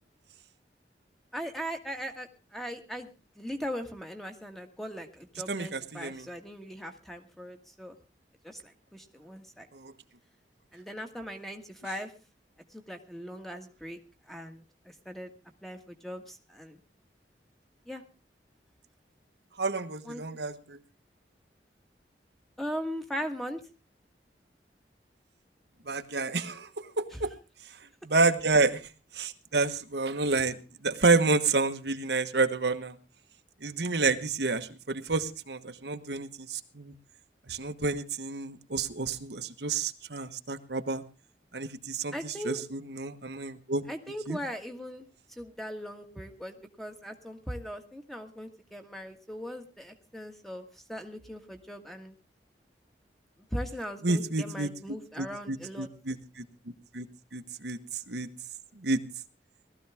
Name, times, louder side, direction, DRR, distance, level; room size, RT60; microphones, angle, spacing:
voice 1, 1.3-8.0 8.4-9.7 10.7-12.1 12.7-14.0 14.3-15.3 15.6-16.8 17.9-18.0 20.0-20.2 22.6-23.6 42.1-42.6 43.9-45.0 45.4-52.2 53.5-55.9, equal, ahead, 5 dB, 1.6 m, -39 dB
voice 2, 5.5-6.3 9.7-9.9 19.6-20.8 25.9-27.3 28.0-28.8 29.1-30.6 30.8-33.0 33.6-36.9 37.5-41.0 41.5-43.8 44.3-44.4 54.0-54.7 55.2-56.2 56.9-57.1 57.3-57.8 58.1-58.3 58.8-59.0, right 3 dB, 80° right, 7 dB, 1.3 m, -29 dB
19.0 x 14.0 x 3.5 m, 0.32 s
head